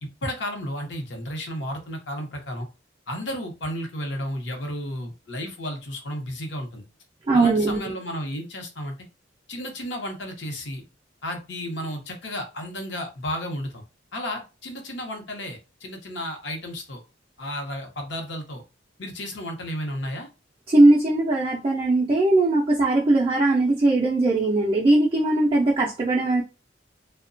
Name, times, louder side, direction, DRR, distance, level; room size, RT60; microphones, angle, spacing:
voice 1, 0.0-2.7 3.1-6.8 7.3-9.0 9.5-10.8 11.2-13.8 14.1-17.0 17.4-18.6 19.0-20.3, equal, 70° left, 0.7 m, -33 dB
voice 2, 7.3-7.8 20.7-26.4, right 2 dB, 30° right, 0.3 m, -19 dB
2.7 x 2.1 x 2.5 m
head